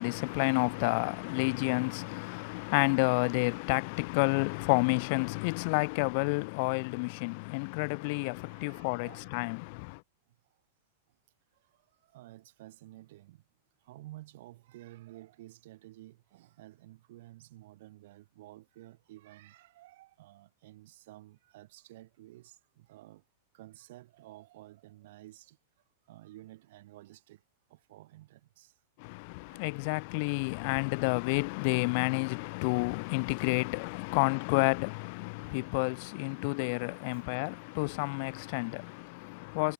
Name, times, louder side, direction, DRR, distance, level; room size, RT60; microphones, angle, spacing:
voice 1, 0.0-10.0 29.0-39.7, left 31 dB, 55° left, 1.3 m, -30 dB
voice 2, 8.2-9.3 12.0-13.4 13.8-23.2 23.5-25.6 26.1-27.4 27.7-28.7 29.5-29.9 32.0-32.1 32.4-32.8 33.1-33.3 33.8-33.9 34.2-34.3 37.1-37.2 38.0-38.7, right 16 dB, 60° right, 5.4 m, -53 dB
hypercardioid pair, 100°, 0 cm